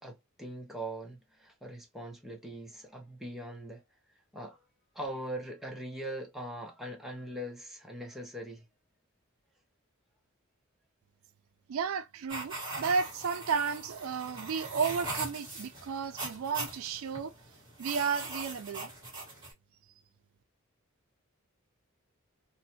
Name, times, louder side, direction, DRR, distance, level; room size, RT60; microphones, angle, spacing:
voice 1, 0.0-3.8 4.3-4.6 4.9-8.6, right 1 dB, ahead, 0.6 m, -41 dB
voice 2, 11.7-17.3 17.8-18.9, right 5 dB, 75° right, 0.4 m, -33 dB
sound 1, 12.3-19.5, right 2 dB, 20° right, 1.4 m, -41 dB
2.7 x 2.1 x 2.7 m
head